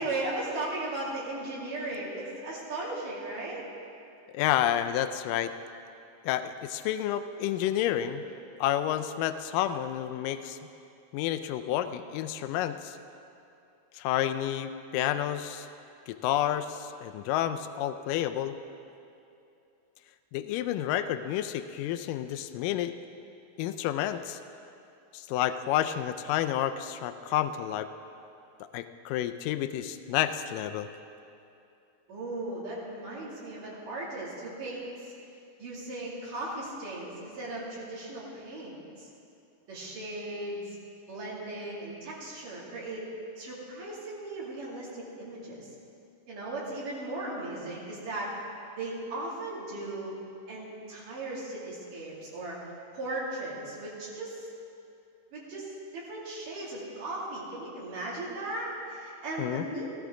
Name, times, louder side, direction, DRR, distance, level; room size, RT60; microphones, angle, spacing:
voice 1, 0.0-3.6 8.2-8.3 32.1-35.1 35.6-39.1 39.7-40.8 41.1-43.1 43.4-45.7 46.3-48.3 48.8-50.2 50.5-54.4 55.3-59.9, right 2 dB, 75° right, -6 dB, 4.2 m, -37 dB
voice 2, 4.3-5.5 6.2-8.2 8.6-10.6 11.1-13.0 14.0-15.7 16.1-18.6 20.3-22.9 23.6-24.4 25.1-27.9 28.7-30.9 59.4-59.6, left 11 dB, 90° left, 10 dB, 2.2 m, -30 dB
16.5 x 14.5 x 3.8 m, 2.7 s
omnidirectional pair, 3.8 m